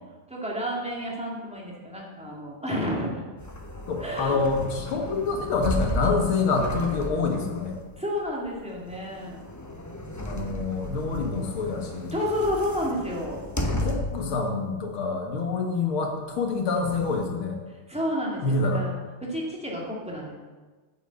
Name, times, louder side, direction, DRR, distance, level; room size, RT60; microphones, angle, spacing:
voice 1, 0.3-3.2 4.0-4.4 8.0-9.4 12.1-13.4 17.7-19.0 19.3-20.3, equal, 5° right, -3 dB, 2.1 m, -30 dB
sound 1, 3.4-14.3 14.8-14.9 16.4-17.2, left 1 dB, 25° left, 0.4 m, -34 dB
voice 2, 3.9-7.8 10.3-12.1 13.7-17.6 18.4-18.8, left 4 dB, 85° left, 2 dB, 2.4 m, -27 dB
8.6 x 6.5 x 8.0 m, 1.3 s
omnidirectional pair, 2.3 m